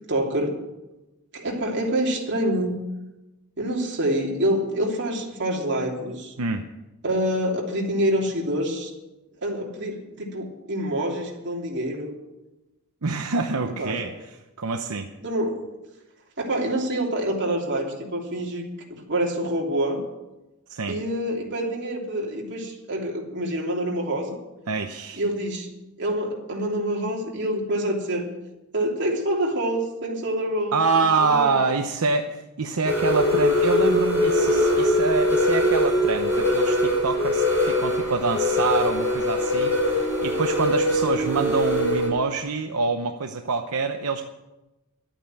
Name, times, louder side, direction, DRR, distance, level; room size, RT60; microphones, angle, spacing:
voice 1, 0.1-0.6 1.3-2.8 3.6-6.3 7.0-8.9 9.4-12.1 13.8-14.0 15.2-15.6 16.4-18.6 18.9-20.0 20.9-24.4 25.2-25.7 26.0-28.3 28.7-30.8 31.2-31.6, right 1 dB, 55° right, -1 dB, 2.9 m, -26 dB
voice 2, 13.0-14.1 14.6-15.1 20.7-21.0 24.7-25.2 30.7-44.2, right 4 dB, 80° right, 5 dB, 0.8 m, -26 dB
sound 1, 32.8-42.1, left 1 dB, 10° left, 5.8 m, -22 dB
12.0 x 9.0 x 9.0 m, 1.0 s
head